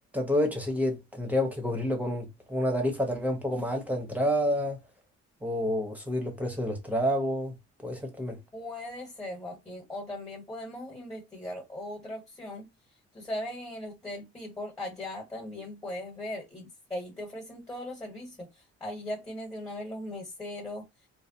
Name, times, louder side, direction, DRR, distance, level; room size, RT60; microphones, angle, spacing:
voice 1, 0.1-4.8 5.4-7.5 7.8-8.4, left 1 dB, 5° right, 1.1 m, -29 dB
voice 2, 8.5-12.7 13.1-20.9, left 1 dB, 10° left, 1.4 m, -39 dB
3.2 x 2.2 x 2.8 m
cardioid pair, 115°, 29 cm